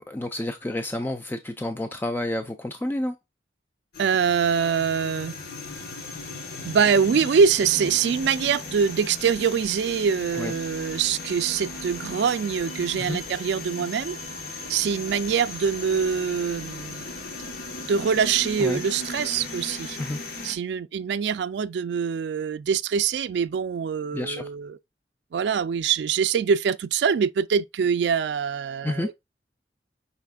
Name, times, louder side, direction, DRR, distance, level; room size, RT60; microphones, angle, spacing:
voice 1, 0.1-3.2 10.3-10.5 13.0-13.2 18.6-18.8 20.0-20.2 24.1-24.5 28.8-29.1, left 1 dB, 10° left, 0.3 m, -29 dB
sound 1, 3.9-20.6, left 3 dB, 60° left, 1.2 m, -37 dB
voice 2, 4.0-5.3 6.6-14.2 14.7-17.1 17.9-20.0 20.4-24.8 25.3-29.1, right 6 dB, 75° right, 0.3 m, -24 dB
5.5 x 4.1 x 2.3 m
head